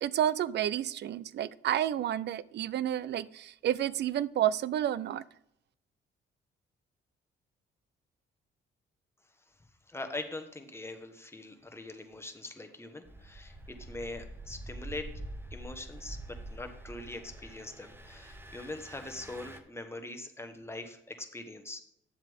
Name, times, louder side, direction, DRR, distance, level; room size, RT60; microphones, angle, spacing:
voice 1, 0.0-5.2, right 11 dB, 60° right, 20 dB, 0.4 m, -30 dB
voice 2, 9.9-15.2 15.5-21.8, left 2 dB, 10° left, 6 dB, 1.2 m, -42 dB
Engine, 13.0-19.6, right 1 dB, 10° right, 0.8 m, -46 dB
10.5 x 7.3 x 3.6 m, 0.75 s
cardioid pair, 90°, 20 cm